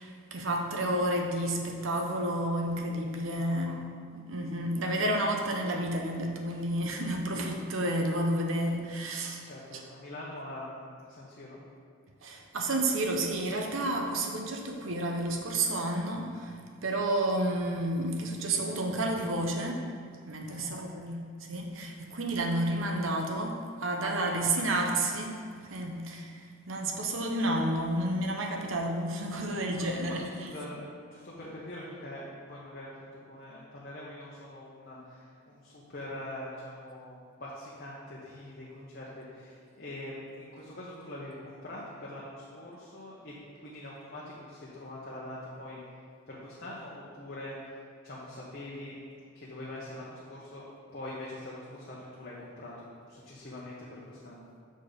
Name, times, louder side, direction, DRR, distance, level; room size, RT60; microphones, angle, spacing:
voice 1, 0.0-3.8 4.1-9.4 12.2-16.6 16.8-19.9 20.3-21.2 21.5-25.3 25.7-30.5, right 1 dB, 70° right, 2 dB, 0.8 m, -30 dB
voice 2, 3.3-3.6 9.4-11.6 20.4-20.8 24.2-25.0 29.9-43.3 43.6-45.8 46.3-47.5 48.0-49.0 49.3-54.5, left 1 dB, 45° left, -6 dB, 0.9 m, -44 dB
6.5 x 4.2 x 5.0 m, 2.1 s
head